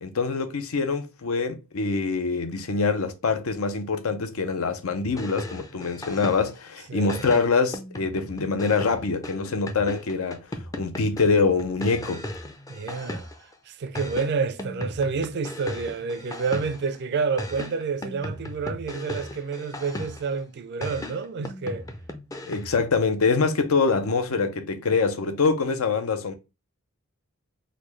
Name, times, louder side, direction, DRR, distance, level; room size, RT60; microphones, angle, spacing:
voice 1, 0.0-10.5 10.8-12.2 22.4-26.3, left 4 dB, 75° left, 0.6 m, -24 dB
sound 1, 5.0-6.7 7.1-13.5 13.9-17.0 17.4-20.4 20.8-22.9, left 1 dB, 15° left, 0.4 m, -37 dB
voice 2, 6.9-7.3 12.7-13.3 13.7-21.9, right 5 dB, 50° right, 0.4 m, -29 dB
3.8 x 2.2 x 3.1 m
head